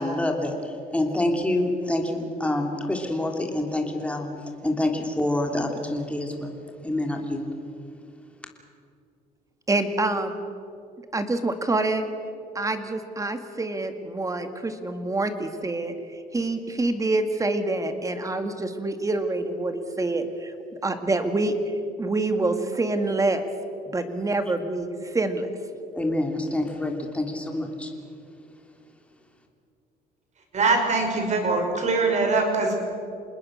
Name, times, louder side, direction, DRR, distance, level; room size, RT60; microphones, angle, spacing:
voice 1, 0.0-4.3 4.6-6.5 6.8-7.5 25.9-27.9, left 1 dB, 5° left, 2 dB, 3.1 m, -27 dB
voice 2, 9.7-10.3 11.1-12.0 12.5-15.9 16.3-20.5 20.8-21.5 22.0-23.5 23.9-25.5, right 2 dB, 20° right, 8 dB, 2.1 m, -26 dB
voice 3, 30.5-32.7, right 3 dB, 45° right, 3 dB, 5.5 m, -22 dB
27.5 x 20.0 x 6.6 m, 2.6 s
cardioid pair, 110°, 17 cm